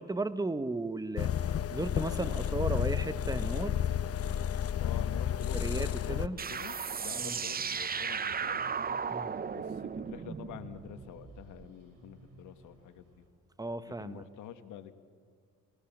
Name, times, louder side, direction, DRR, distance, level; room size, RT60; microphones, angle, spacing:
voice 1, 0.0-3.8 5.5-6.4 7.2-7.4 9.1-9.4 13.6-14.2, right 2 dB, 10° right, 12 dB, 1.2 m, -35 dB
sound 1, 1.2-6.3, left 9 dB, 50° left, 0.8 m, -31 dB
sound 2, 2.4-13.3, right 2 dB, 55° right, 4.8 m, -59 dB
voice 2, 4.7-8.6 9.4-13.2 14.0-14.9, left 10 dB, 90° left, 9 dB, 1.7 m, -47 dB
sound 3, 6.4-11.7, right 6 dB, 30° right, 0.8 m, -36 dB
29.5 x 18.5 x 7.4 m, 2.1 s
cardioid pair, 90°, 30 cm